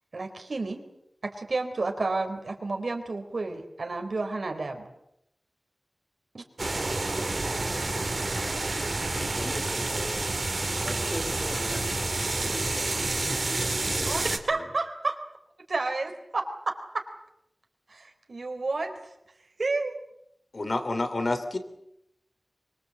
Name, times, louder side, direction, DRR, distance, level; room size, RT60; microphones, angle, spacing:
voice 1, 0.1-0.8 1.2-4.9 6.3-6.4 14.0-15.2 15.7-17.0 17.9-18.9 19.6-20.0, right 3 dB, 75° right, 5 dB, 3.9 m, -31 dB
sound 1, 6.6-14.4, right 2 dB, 55° right, 2.9 m, -29 dB
voice 2, 9.3-10.2 10.8-14.7, equal, 15° left, 5 dB, 3.3 m, -40 dB
voice 3, 20.5-21.6, left 2 dB, 65° left, 9 dB, 3.0 m, -28 dB
25.0 x 23.0 x 7.8 m, 0.80 s
wide cardioid pair, 60°, 0 cm